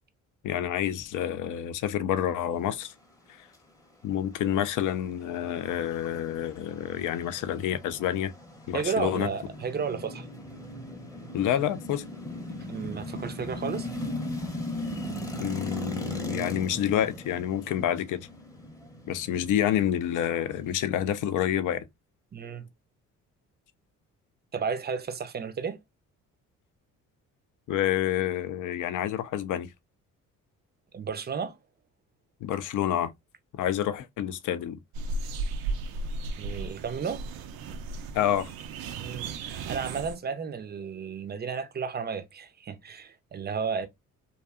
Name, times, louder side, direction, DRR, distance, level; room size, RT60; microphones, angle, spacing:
voice 1, 0.4-2.9 4.0-8.3 8.7-9.3 11.3-12.0 15.4-18.2 19.1-21.9 27.7-29.7 32.4-33.1 33.5-34.8 38.1-38.5, left 10 dB, 50° left, 0.5 m, -28 dB
sound 1, 4.6-21.4, left 1 dB, 10° left, 0.8 m, -38 dB
voice 2, 8.7-10.3 12.7-13.9 22.3-22.7 24.5-25.8 30.9-31.5 36.4-37.2 38.9-43.9, right 6 dB, 25° right, 0.6 m, -33 dB
sound 2, 34.9-40.2, right 3 dB, 65° right, 0.6 m, -35 dB
2.6 x 2.3 x 2.3 m
hypercardioid pair, 50°, 39 cm